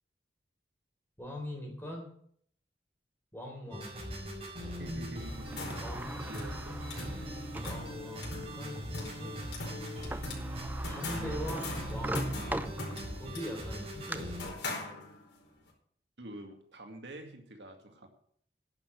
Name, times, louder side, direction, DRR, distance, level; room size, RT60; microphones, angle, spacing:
voice 1, 1.2-2.1 3.3-4.0 5.8-6.2 7.3-9.4 10.8-12.2 13.1-14.8, equal, 10° left, 0 dB, 4.0 m, -42 dB
sound 1, 3.7-14.5, equal, 35° right, 4.9 m, -40 dB
voice 2, 4.8-5.8 6.2-7.3 16.2-18.1, right 1 dB, 75° right, 4 dB, 2.1 m, -47 dB
Sliding door, 5.2-7.8 8.4-8.5 9.8-9.9 10.1-13.3 13.7-14.2, right 1 dB, 10° right, 0.6 m, -40 dB
sound 2, 5.3-15.4, left 2 dB, 75° left, 4.7 m, -42 dB
11.0 x 6.8 x 9.4 m, 0.63 s
head